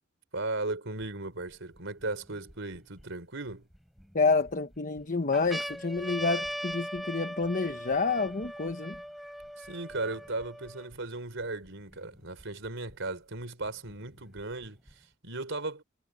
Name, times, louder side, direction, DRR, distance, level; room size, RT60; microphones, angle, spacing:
voice 1, 0.3-3.7 9.6-15.8, right 2 dB, 65° right, 4.7 m, -36 dB
sound 1, 1.0-1.1 1.8-3.0 3.7-4.5 5.0-5.1 5.3-11.0 11.7-11.8 11.9-12.9 13.9-14.9, equal, ahead, 4.0 m, -40 dB
voice 2, 4.1-9.0, left 4 dB, 40° left, 1.1 m, -28 dB
head